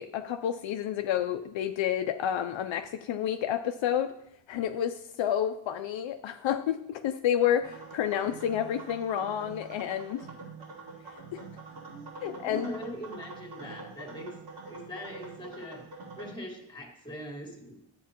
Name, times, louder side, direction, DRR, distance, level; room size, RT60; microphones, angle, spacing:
voice 1, 0.0-4.1 4.5-10.3 11.3-11.4 12.2-12.7, left 10 dB, 70° left, 8 dB, 0.5 m, -30 dB
sound 1, 7.6-16.3, right 3 dB, 80° right, 3.8 m, -45 dB
voice 2, 11.9-14.3 14.6-15.8 16.2-17.8, equal, 10° left, 1 dB, 1.8 m, -41 dB
11.5 x 8.3 x 2.9 m, 0.76 s
wide cardioid pair, 145°, 48 cm